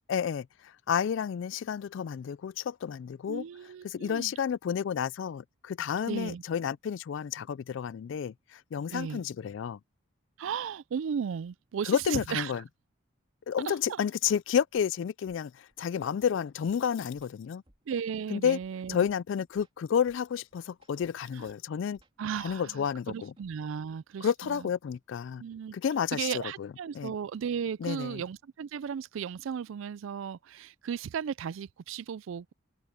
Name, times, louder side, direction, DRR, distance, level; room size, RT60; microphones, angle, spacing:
voice 1, 0.1-3.4 3.8-9.8 11.9-12.6 13.5-17.6 18.3-18.6 18.9-22.0 22.4-23.3 24.2-25.4 25.7-27.1 27.8-28.2, left 8 dB, 65° left, 0.3 m, -31 dB
voice 2, 3.3-4.3 6.1-6.4 8.9-9.2 10.4-12.5 13.7-14.0 17.9-19.0 21.4-21.5 22.2-24.7 25.4-25.8 26.1-32.5, right 7 dB, 75° right, 0.3 m, -35 dB
sound 1, 14.2-14.4 14.7-14.9 15.3-16.8 17.1-19.2 19.5-21.6 21.9-23.8, right 1 dB, 25° right, 3.0 m, -64 dB
head